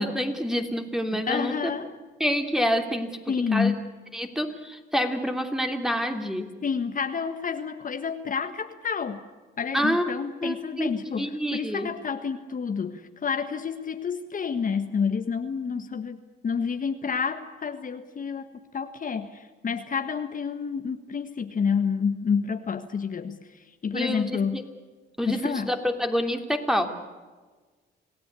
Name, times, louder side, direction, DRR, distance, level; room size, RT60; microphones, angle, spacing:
voice 1, 0.0-1.6 2.2-3.7 4.1-6.5 9.7-10.0 10.4-10.9 11.2-11.9 23.9-24.6 25.2-26.9, equal, ahead, 5 dB, 3.2 m, -27 dB
voice 2, 1.1-2.0 3.3-3.8 6.6-9.2 9.6-16.2 16.4-18.5 18.7-24.6 25.2-25.7, left 6 dB, 45° left, 7 dB, 1.5 m, -29 dB
27.5 x 17.0 x 8.4 m, 1.4 s
cardioid pair, 90°, 20 cm